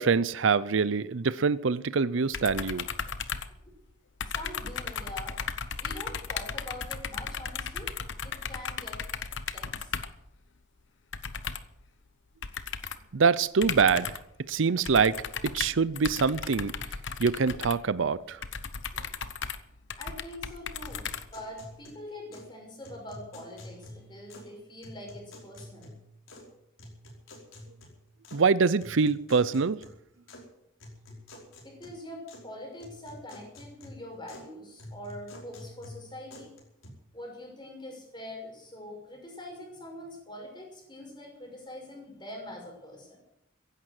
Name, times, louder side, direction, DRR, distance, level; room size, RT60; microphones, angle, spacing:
voice 1, 0.0-2.9 13.1-14.1 14.5-16.7 17.2-18.4 28.3-29.8, right 5 dB, 70° right, 0.5 m, -25 dB
sound 1, 2.3-3.9 4.2-10.2 11.1-11.8 12.4-13.1 13.6-14.3 14.8-21.7, left 6 dB, 65° left, 1.0 m, -36 dB
voice 2, 4.3-5.4 5.8-7.9 8.2-9.0 9.5-10.0 19.9-25.9 31.1-31.3 31.6-36.5 37.1-43.2, left 1 dB, 20° left, 5.8 m, -44 dB
sound 2, 20.9-22.5 22.8-24.5 24.8-26.5 26.8-28.4 28.8-30.4 30.8-32.5 32.8-34.5 34.8-36.9, left 1 dB, 85° left, 5.2 m, -49 dB
16.0 x 11.0 x 7.7 m
head